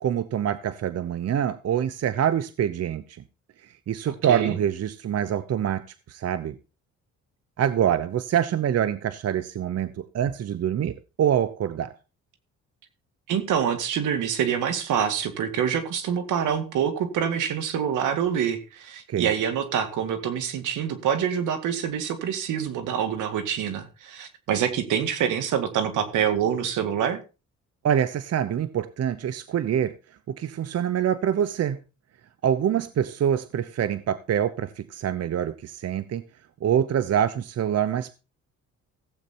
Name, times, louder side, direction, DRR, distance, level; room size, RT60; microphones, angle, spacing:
voice 1, 0.0-3.2 3.6-5.8 6.1-6.6 7.6-11.9 19.1-19.3 27.8-29.9 30.3-31.8 32.4-36.2 36.6-38.1, right 9 dB, 55° right, 0.9 m, -25 dB
voice 2, 13.3-27.2, right 8 dB, 80° right, 2.2 m, -26 dB
15.5 x 8.3 x 4.4 m
cardioid pair, 90°, 30 cm